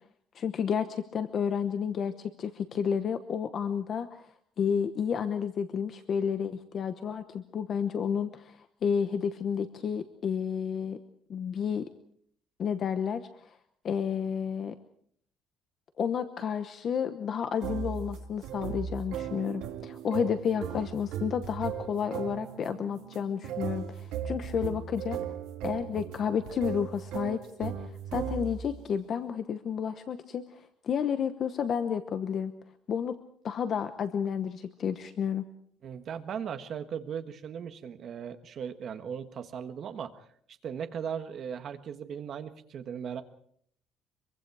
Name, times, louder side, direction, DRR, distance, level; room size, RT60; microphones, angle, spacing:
voice 1, 0.3-4.3 4.6-11.0 11.3-11.8 12.6-13.6 13.8-14.7 16.0-25.2 25.6-27.7 28.1-30.4 30.8-32.5 32.9-33.1 33.4-35.4, left 7 dB, 35° left, 10 dB, 1.0 m, -31 dB
sound 1, 17.6-28.8, right 9 dB, 75° right, 2.0 m, -37 dB
voice 2, 35.8-40.2 40.6-43.2, right 7 dB, 35° right, 9 dB, 1.5 m, -38 dB
25.0 x 23.5 x 4.8 m, 0.63 s
cardioid pair, 180°, 0 cm